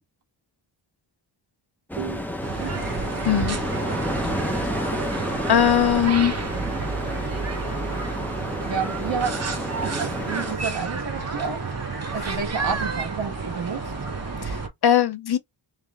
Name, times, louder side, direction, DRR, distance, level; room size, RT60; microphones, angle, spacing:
sound 1, 1.9-10.6, left 1 dB, 5° left, 0.7 m, -31 dB
sound 2, 2.4-14.7, right 5 dB, 35° right, 0.7 m, -31 dB
sound 3, 2.6-14.7, right 2 dB, 50° right, 1.7 m, -36 dB
voice 1, 3.2-3.6 4.6-4.9 5.5-6.3 12.2-12.3 14.4-15.4, left 9 dB, 55° left, 0.6 m, -21 dB
voice 2, 8.7-9.3 10.0-11.6 12.1-13.8, right 6 dB, 75° right, 1.6 m, -30 dB
3.3 x 3.2 x 3.6 m
wide cardioid pair, 130°, 46 cm